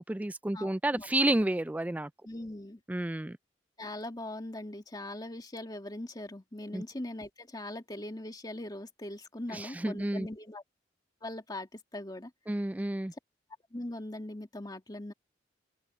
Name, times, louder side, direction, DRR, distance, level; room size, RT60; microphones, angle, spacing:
voice 1, 0.0-2.1 2.9-3.4 6.7-6.8 9.5-10.3 12.5-13.1, right 1 dB, 10° right, 0.3 m, -30 dB
voice 2, 0.5-1.1 2.2-2.8 3.8-10.6 11.2-12.3 13.7-15.1, left 1 dB, 20° left, 2.1 m, -41 dB
open air
head